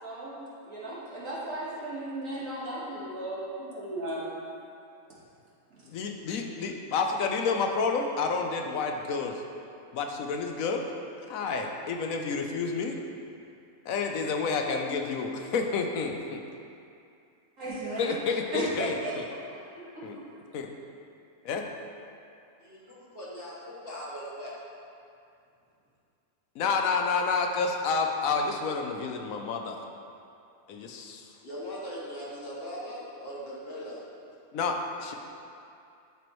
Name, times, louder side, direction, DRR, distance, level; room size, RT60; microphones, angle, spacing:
voice 1, 0.0-4.4 17.6-18.2 18.5-20.3, right 1 dB, 65° right, -7 dB, 2.0 m, -36 dB
voice 2, 5.9-9.4 9.9-10.9 11.3-13.0 13.9-16.4 18.0-19.2 20.0-20.2 20.5-20.7 21.4-21.7 26.6-29.8 30.7-31.2 34.5-35.1, left 4 dB, 80° left, 3 dB, 1.0 m, -29 dB
voice 3, 22.6-24.5 31.4-34.0, equal, 45° left, -6 dB, 1.5 m, -40 dB
12.0 x 4.6 x 3.1 m, 2.5 s
omnidirectional pair, 1.4 m